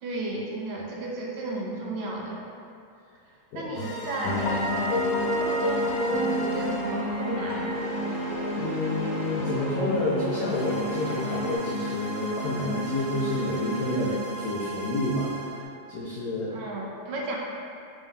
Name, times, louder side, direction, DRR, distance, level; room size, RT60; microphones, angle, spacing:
voice 1, 0.0-2.4 3.5-4.9 5.2-7.8 16.5-17.4, right 2 dB, 80° right, -2 dB, 1.4 m, -33 dB
sound 1, 3.8-15.6, equal, 70° left, 1.3 m, -30 dB
sound 2, 4.3-11.6, equal, 20° right, 0.3 m, -38 dB
voice 2, 8.6-16.5, left 1 dB, 90° left, -6 dB, 0.8 m, -29 dB
3.7 x 2.6 x 3.5 m, 2.5 s
omnidirectional pair, 2.2 m